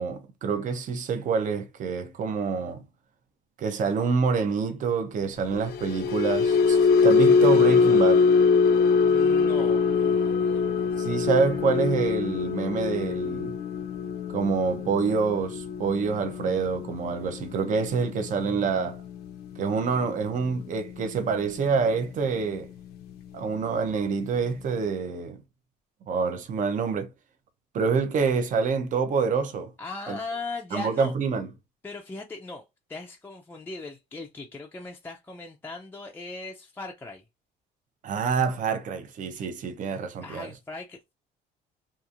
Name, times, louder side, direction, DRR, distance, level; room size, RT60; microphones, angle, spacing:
voice 1, 0.0-2.8 3.6-8.3 11.0-13.5 14.3-19.0 19.6-22.7 23.3-25.4 26.1-27.1 27.7-29.7 30.1-30.2 30.7-31.5 38.0-40.5, right 5 dB, 50° right, 0.6 m, -27 dB
sound 1, 5.5-21.9 22.3-22.6 22.9-23.1, left 5 dB, 70° left, 0.5 m, -24 dB
voice 2, 9.1-11.1 29.8-31.1 31.8-32.6 32.9-37.3 40.2-41.1, left 3 dB, 15° left, 0.4 m, -39 dB
2.9 x 2.5 x 2.4 m
cardioid pair, 110°, 17 cm